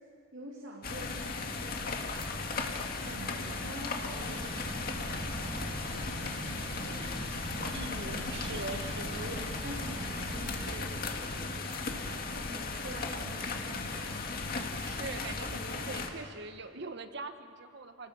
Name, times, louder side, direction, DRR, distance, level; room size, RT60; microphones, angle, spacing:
voice 1, 0.3-1.8 3.0-8.6 8.9-14.3, right 1 dB, 80° right, -2 dB, 2.8 m, -47 dB
sound 1, 0.8-16.1, left 3 dB, 50° left, 2.0 m, -36 dB
sound 2, 4.1-10.7, equal, 30° right, 5.0 m, -42 dB
voice 2, 7.4-9.2 14.8-18.1, right 3 dB, 60° right, 8 dB, 1.3 m, -42 dB
29.0 x 19.0 x 7.1 m, 2.3 s
head